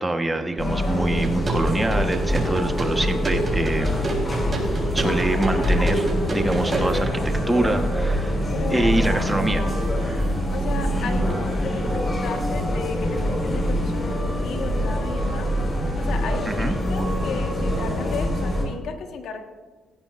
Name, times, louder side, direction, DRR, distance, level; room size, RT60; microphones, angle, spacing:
voice 1, 0.0-4.0 4.9-8.4 8.7-9.6 16.4-16.8, right 2 dB, 15° right, 6 dB, 1.2 m, -25 dB
sound 1, 0.6-18.6, equal, 30° left, 4.8 m, -24 dB
sound 2, 1.2-7.1, right 1 dB, 35° right, 4.0 m, -28 dB
voice 2, 8.5-9.8 10.5-15.5 16.0-19.4, left 5 dB, 75° left, 4 dB, 1.5 m, -34 dB
18.0 x 15.5 x 2.6 m, 1.3 s
cardioid pair, 90°, 0 cm